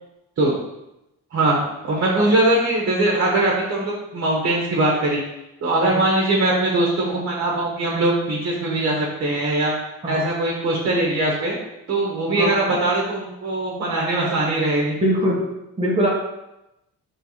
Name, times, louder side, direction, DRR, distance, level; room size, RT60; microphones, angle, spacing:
voice 1, 1.3-5.2 5.6-9.7 10.1-11.5 11.9-15.0, right 2 dB, 45° right, -3 dB, 1.3 m, -21 dB
voice 2, 15.0-15.4 15.8-16.1, equal, 20° right, -5 dB, 1.2 m, -21 dB
4.6 x 3.7 x 5.6 m, 0.90 s
cardioid pair, 135°, 31 cm